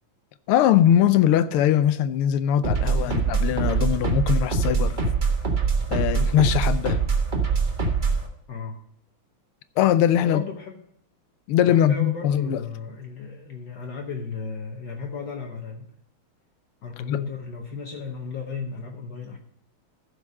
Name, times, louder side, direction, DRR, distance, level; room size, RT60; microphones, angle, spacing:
voice 1, 0.5-5.0 5.9-7.0 9.8-10.4 11.5-12.6 17.1-17.2, left 10 dB, 90° left, 1.6 m, -21 dB
sound 1, 2.6-8.3, right 4 dB, 25° right, 1.3 m, -23 dB
voice 2, 10.2-10.8 11.7-15.9 16.8-19.4, left 5 dB, 60° left, 1.5 m, -35 dB
15.0 x 5.1 x 5.4 m
omnidirectional pair, 2.3 m